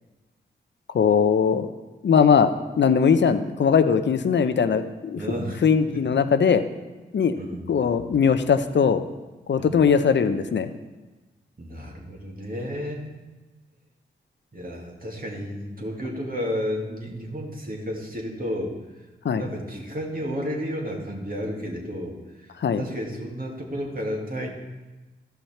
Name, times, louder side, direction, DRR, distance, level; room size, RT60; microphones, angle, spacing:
voice 1, 0.9-1.7 2.0-2.5 2.8-5.2 5.6-6.6 7.1-7.3 7.7-9.0 9.5-10.7 19.2-19.5 22.6-22.8, left 6 dB, 60° left, 10 dB, 0.7 m, -20 dB
voice 2, 5.2-5.6 6.1-6.2 7.4-7.6 9.6-9.8 11.6-13.1 14.5-18.7 19.3-24.5, equal, 45° right, -1 dB, 2.2 m, -32 dB
12.5 x 5.7 x 4.3 m, 1.2 s
cardioid pair, 45°, 21 cm